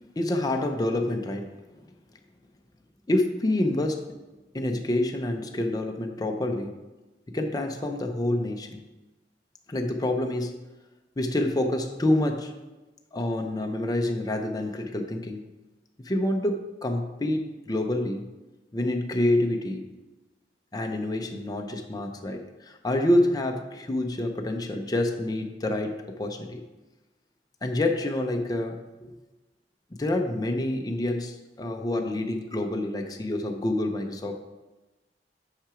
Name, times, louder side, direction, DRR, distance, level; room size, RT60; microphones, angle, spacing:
voice 1, 0.2-1.6 3.1-4.1 4.5-6.8 7.3-8.8 9.7-10.6 11.2-12.6 13.1-15.4 16.0-18.3 18.7-19.8 20.7-26.6 27.6-29.2 30.0-34.4, left 1 dB, 20° left, 3 dB, 0.5 m, -27 dB
6.0 x 5.8 x 4.8 m, 1.1 s
head